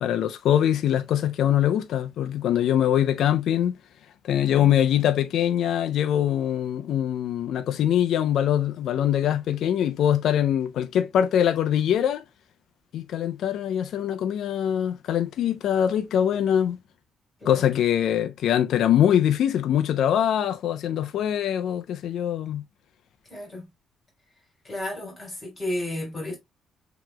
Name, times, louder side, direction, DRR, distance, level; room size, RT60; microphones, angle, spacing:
voice 1, 0.0-3.7 4.2-12.2 12.9-16.8 17.4-22.6, left 10 dB, 75° left, 0.4 m, -23 dB
voice 2, 4.5-4.8 17.4-17.7 23.3-23.7 24.6-26.3, left 1 dB, 30° left, 3.2 m, -33 dB
7.5 x 2.9 x 2.2 m
cardioid pair, 90°, 0 cm